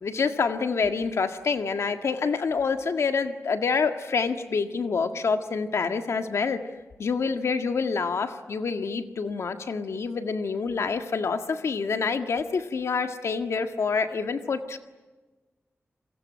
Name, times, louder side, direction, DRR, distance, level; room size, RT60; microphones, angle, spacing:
voice 1, 0.0-6.6 7.0-14.8, left 5 dB, 85° left, 7 dB, 1.8 m, -27 dB
29.5 x 22.5 x 7.5 m, 1.2 s
wide cardioid pair, 135°, 5 cm